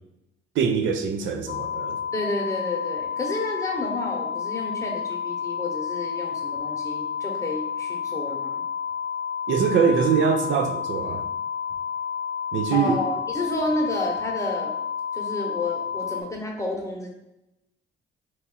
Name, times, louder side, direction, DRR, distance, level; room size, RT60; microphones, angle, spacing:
voice 1, 0.6-2.0 9.5-11.2 12.5-13.0, right 6 dB, 75° right, 6 dB, 0.5 m, -23 dB
sound 1, 1.5-16.2, left 7 dB, 45° left, 0.5 m, -30 dB
voice 2, 2.1-8.6 12.7-14.7 15.1-17.1, left 2 dB, 15° left, -1 dB, 0.9 m, -30 dB
3.0 x 2.6 x 3.9 m, 0.90 s
cardioid pair, 90°, 20 cm